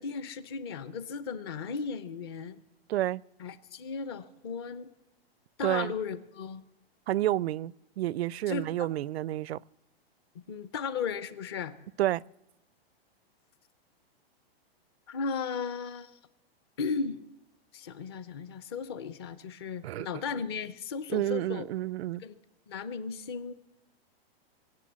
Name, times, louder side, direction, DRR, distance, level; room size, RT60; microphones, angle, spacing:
voice 1, 0.0-2.6 3.4-4.9 5.6-6.6 8.5-8.9 10.3-11.7 15.1-16.1 16.8-17.2 17.7-21.7 22.2-22.4 22.7-23.5, left 5 dB, 25° left, 0.6 m, -36 dB
voice 2, 2.9-3.2 5.6-5.9 7.1-9.6 12.0-12.2 19.8-20.1 21.1-22.2, right 14 dB, 90° right, 0.5 m, -30 dB
23.5 x 8.0 x 7.4 m
supercardioid pair, 175°, 30 cm